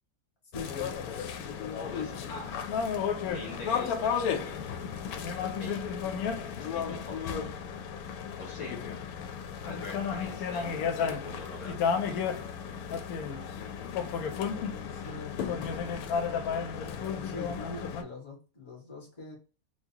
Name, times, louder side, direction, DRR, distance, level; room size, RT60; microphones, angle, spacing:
sound 1, 0.5-18.0, left 6 dB, 90° left, 1.1 m, -33 dB
voice 1, 0.5-1.1 14.5-15.4 16.8-19.4, left 3 dB, 20° left, -3 dB, 1.2 m, -44 dB
voice 2, 1.9-2.6 3.2-4.4 5.5-5.8 6.6-7.2 8.4-8.8 9.6-11.9 15.0-15.2, left 2 dB, 60° left, -1 dB, 1.4 m, -44 dB
4.3 x 2.2 x 2.8 m, 0.33 s
omnidirectional pair, 1.5 m